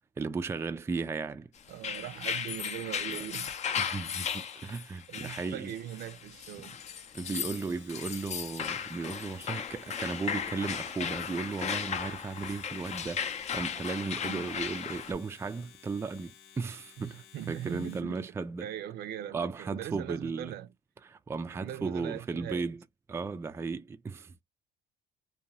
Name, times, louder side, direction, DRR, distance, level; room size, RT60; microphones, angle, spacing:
voice 1, 0.2-1.5 3.8-5.7 7.1-13.3 13.5-18.7 19.3-20.6 21.0-22.8 23.1-24.4, right 4 dB, 15° right, 0.3 m, -35 dB
sound 1, 1.7-15.1, left 7 dB, 40° left, 0.5 m, -36 dB
voice 2, 1.7-3.9 5.1-6.8 14.2-14.6 17.0-18.3 18.6-20.7 21.6-22.7, right 11 dB, 70° right, 0.5 m, -40 dB
Domestic sounds home sounds, 7.1-18.2, left 8 dB, 85° left, 1.0 m, -56 dB
2.6 x 2.3 x 2.9 m
cardioid pair, 110°, 17 cm